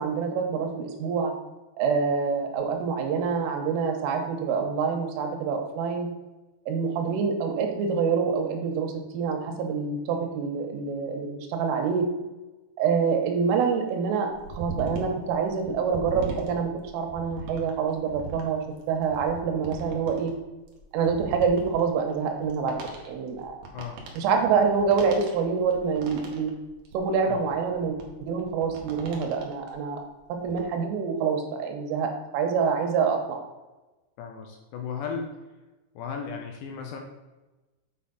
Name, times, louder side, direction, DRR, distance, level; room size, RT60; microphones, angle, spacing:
voice 1, 0.0-1.3 1.8-6.1 6.7-12.1 12.8-14.3 14.6-20.3 20.9-22.8 23.1-23.6 24.2-26.5 26.9-30.0 30.4-33.4, right 5 dB, 90° right, 3 dB, 3.6 m, -26 dB
sound 1, 14.3-29.7 30.1-30.6, right 3 dB, 70° right, 2.2 m, -40 dB
voice 2, 23.7-24.0 27.3-27.4 34.2-35.4 36.0-37.0, left 6 dB, 80° left, 3 dB, 2.6 m, -35 dB
8.2 x 5.8 x 4.0 m, 1.1 s
omnidirectional pair, 5.8 m